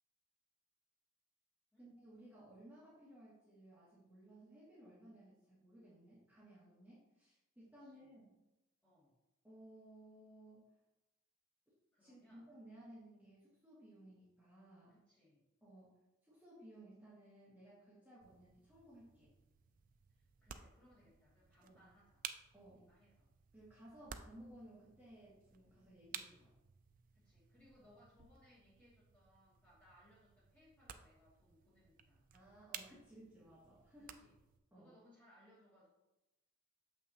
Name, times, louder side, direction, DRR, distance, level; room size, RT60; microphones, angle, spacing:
voice 1, 1.8-8.3 9.4-10.7 12.0-14.9 15.6-16.0 16.2-19.3 21.6-21.8 22.5-22.9 23.5-26.5 32.3-34.2 34.7-34.9, right 1 dB, 10° right, -11 dB, 1.7 m, -59 dB
voice 2, 7.8-8.1 8.8-9.1 11.9-12.5 14.9-15.5 20.1-22.3 22.7-23.3 27.1-32.3 34.0-34.4 34.7-35.9, left 1 dB, 10° left, -8 dB, 2.1 m, -68 dB
sound 1, 18.2-34.6, right 8 dB, 40° right, 0.3 m, -56 dB
7.0 x 5.7 x 2.8 m, 0.96 s
head